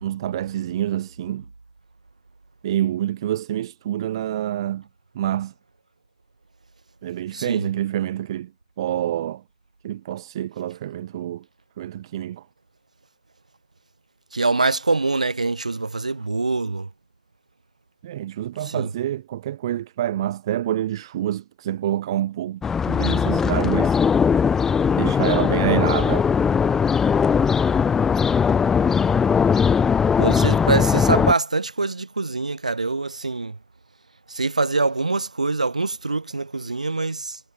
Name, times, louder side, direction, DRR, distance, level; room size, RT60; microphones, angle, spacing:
voice 1, 0.0-1.4 2.6-4.8 5.2-5.5 7.0-8.5 8.8-9.4 9.8-11.4 11.8-12.5 18.0-22.6 22.9-24.0 25.0-26.3, right 12 dB, 45° right, 1.9 m, -27 dB
voice 2, 7.3-7.7 14.3-16.9 18.6-18.9 30.2-33.6 34.3-37.4, right 3 dB, 75° right, 6.0 m, -24 dB
sound 1, 22.6-31.3, left 6 dB, 10° left, 1.1 m, -19 dB
figure-of-eight pair, 120°, 4 cm